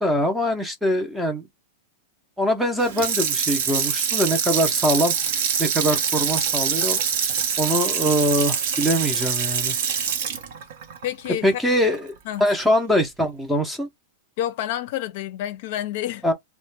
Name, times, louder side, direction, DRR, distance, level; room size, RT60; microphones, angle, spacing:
voice 1, 0.0-1.5 2.4-7.0 7.6-9.8 11.4-12.1 12.4-13.9 16.2-16.3, equal, ahead, 0.6 m, -23 dB
Water tap faucet / Sink (filling or washing), 2.8-12.0 12.4-12.5, right 7 dB, 60° right, 0.8 m, -24 dB
voice 2, 11.0-11.7 12.3-12.5 14.4-16.3, left 12 dB, 55° left, 0.5 m, -29 dB
2.5 x 2.1 x 3.3 m
supercardioid pair, 155°, 0 cm